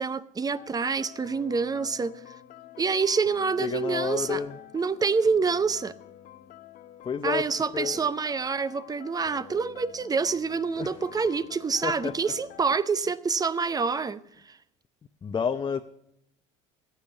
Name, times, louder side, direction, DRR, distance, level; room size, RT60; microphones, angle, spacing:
voice 1, 0.0-2.1 2.8-4.4 4.7-5.9 7.2-14.6, right 5 dB, 25° right, 0.7 m, -27 dB
sound 1, 0.5-12.8, left 12 dB, 55° left, 0.9 m, -48 dB
voice 2, 3.6-4.6 7.0-8.1 10.8-10.9 11.8-12.2 15.2-15.8, left 6 dB, 30° left, 0.7 m, -30 dB
15.0 x 8.5 x 8.1 m
supercardioid pair, 85°, 16 cm